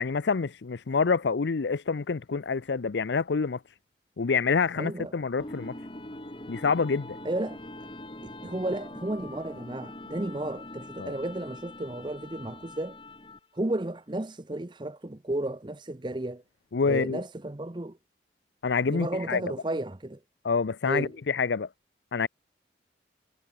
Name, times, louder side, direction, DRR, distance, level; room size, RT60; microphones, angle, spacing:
voice 1, 0.0-3.6 4.2-5.7 6.5-7.2 11.0-11.1 16.7-17.2 18.6-19.4 20.4-21.7 22.1-22.3, left 5 dB, 80° left, 0.6 m, -27 dB
voice 2, 4.8-5.1 7.2-7.6 8.2-13.0 13.5-16.4 16.9-18.0 18.8-20.2 20.8-21.1, right 1 dB, 25° right, 0.7 m, -33 dB
sound 1, 5.4-13.6, left 1 dB, 30° left, 2.5 m, -43 dB
head